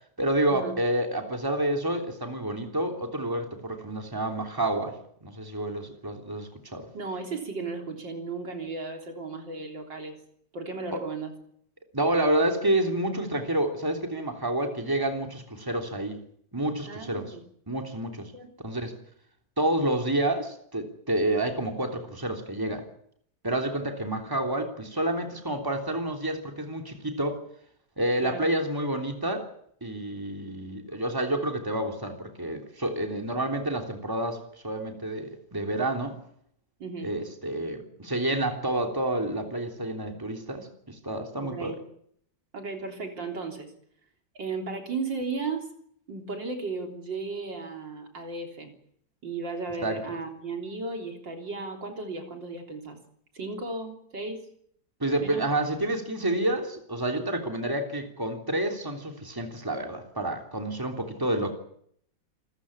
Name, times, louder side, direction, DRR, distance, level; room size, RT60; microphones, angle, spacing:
voice 1, 0.2-6.9 10.9-11.0 11.9-16.2 16.5-17.3 17.7-18.3 18.6-18.9 19.6-22.8 23.4-27.4 28.0-29.5 29.8-36.2 37.0-41.8 49.8-50.0 55.0-61.5, right 1 dB, 10° right, 4 dB, 3.3 m, -29 dB
voice 2, 6.9-10.2 10.5-11.3 16.9-17.4 18.3-18.5 28.2-28.5 36.8-37.1 41.4-41.8 42.5-43.7 44.4-45.7 46.1-48.7 49.2-53.0 53.3-54.4 55.2-55.5, right 3 dB, 80° right, 4 dB, 4.2 m, -35 dB
28.0 x 14.5 x 8.7 m, 0.67 s
omnidirectional pair, 2.0 m